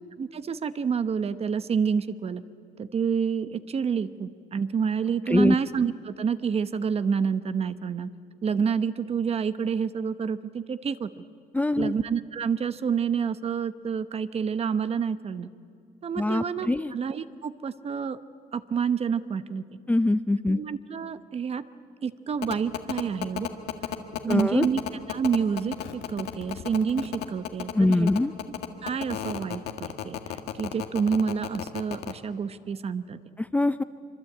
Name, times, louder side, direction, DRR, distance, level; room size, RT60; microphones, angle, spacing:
voice 1, 0.2-2.4 2.8-8.1 8.4-11.1 11.8-15.5 16.0-18.2 18.5-19.6 20.5-21.6 22.0-23.5 24.2-24.8 25.1-28.1 28.8-30.2 30.6-33.2, right 6 dB, 35° right, 13 dB, 1.0 m, -28 dB
voice 2, 11.5-11.9 16.2-16.9 19.9-20.6 24.2-24.6 27.7-28.3 33.4-33.8, left 2 dB, 10° left, 12 dB, 0.6 m, -23 dB
sound 1, 22.4-32.1, left 11 dB, 80° left, 1.7 m, -32 dB
25.5 x 23.5 x 8.7 m, 2.4 s
cardioid pair, 110°, 17 cm